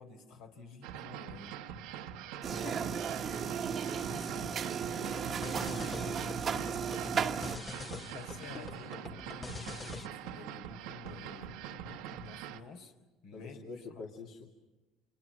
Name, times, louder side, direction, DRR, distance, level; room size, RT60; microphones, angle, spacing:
voice 1, 0.0-1.6 2.5-4.6 4.9-6.6 6.9-7.3 7.9-9.6 10.0-12.9 13.2-13.7, left 4 dB, 80° left, 4 dB, 3.6 m, -51 dB
sound 1, 0.8-12.6, right 9 dB, 85° right, 1.2 m, -44 dB
sound 2, 2.4-7.6, right 7 dB, 40° right, 1.1 m, -35 dB
sound 3, 5.0-10.1, left 4 dB, 30° left, 0.9 m, -45 dB
voice 2, 13.3-14.4, left 4 dB, 60° left, -1 dB, 2.6 m, -45 dB
29.0 x 27.5 x 6.1 m, 1.2 s
supercardioid pair, 100°, 0 cm